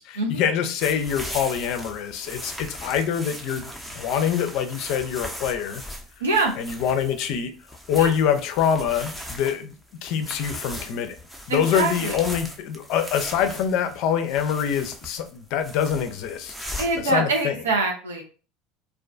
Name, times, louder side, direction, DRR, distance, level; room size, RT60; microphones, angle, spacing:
voice 1, 0.0-3.7 4.0-5.8 6.6-7.5 7.9-9.8 10.0-11.2 11.5-16.5 17.0-17.5, left 8 dB, 60° left, 8 dB, 0.4 m, -25 dB
sound 1, 0.8-17.1, equal, 5° right, 0.6 m, -38 dB
voice 2, 6.2-6.5 8.0-8.1 11.5-12.2 16.8-18.2, right 2 dB, 85° right, 2 dB, 0.6 m, -24 dB
2.4 x 2.2 x 2.4 m, 0.38 s
hypercardioid pair, 70°, 0 cm